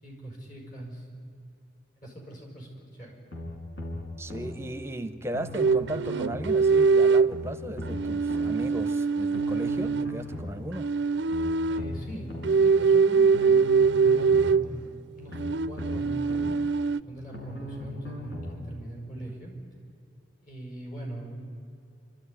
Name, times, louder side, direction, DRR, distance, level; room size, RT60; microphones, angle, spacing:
voice 1, 0.0-1.3 2.0-3.3 11.6-14.9 15.2-15.4 15.7-16.4 17.1-19.5 20.4-21.5, right 1 dB, 45° left, 0 dB, 5.8 m, -41 dB
sound 1, 3.3-4.6 5.3-6.6 7.3-8.6 9.3-10.6 11.3-12.6 13.3-14.6 15.3-16.6 17.3-18.6 19.3-19.4, left 1 dB, 75° left, 5.4 m, -38 dB
voice 2, 4.2-10.9, right 1 dB, 15° right, 10 dB, 0.8 m, -36 dB
sound 2, 5.5-7.4 7.9-10.2 10.7-11.9 12.4-14.7 15.3-17.0, right 5 dB, 70° right, 0.5 m, -23 dB
29.0 x 13.0 x 10.0 m, 2.7 s
head